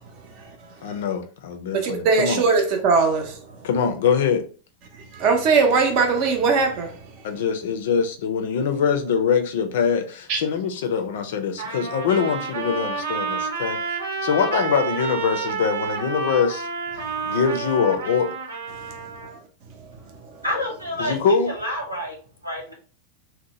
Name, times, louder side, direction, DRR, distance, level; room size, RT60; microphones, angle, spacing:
voice 1, 0.8-2.4 3.6-4.4 7.2-13.8 14.2-16.7 17.2-18.3 21.0-21.5, left 6 dB, 55° left, 0.4 m, -23 dB
voice 2, 1.7-3.4 5.1-7.0 10.3-10.4, right 4 dB, 45° right, 0.6 m, -20 dB
Trumpet, 11.6-19.4, right 4 dB, 70° right, 0.8 m, -29 dB
voice 3, 20.4-22.2 22.4-22.7, left 1 dB, 90° right, 1.2 m, -28 dB
2.8 x 2.1 x 2.9 m
figure-of-eight pair, 90°, 0 cm